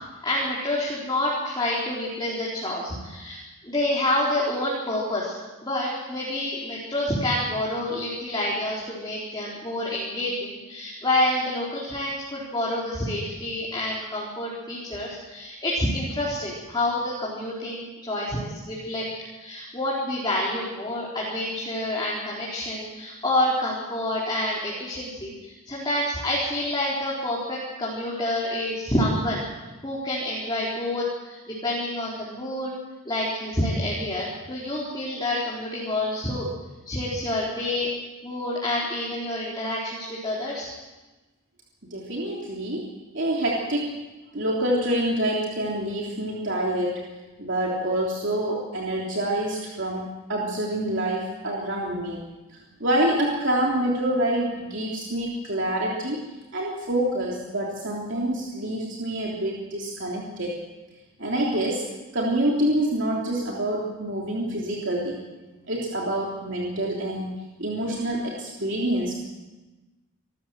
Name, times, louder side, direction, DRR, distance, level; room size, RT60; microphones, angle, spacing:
voice 1, 0.2-5.4 5.6-19.0 19.4-29.4 29.8-32.7 33.0-36.5 36.9-37.9 38.2-40.7, left 1 dB, 20° left, -6 dB, 4.1 m, -28 dB
voice 2, 41.9-42.9 43.1-43.9 44.3-47.0 47.4-50.0 50.3-52.2 52.5-56.2 56.5-60.5 61.2-61.9 62.1-65.2 65.7-69.1, right 1 dB, 55° right, -3 dB, 3.4 m, -26 dB
26.5 x 14.0 x 7.8 m, 1.2 s
head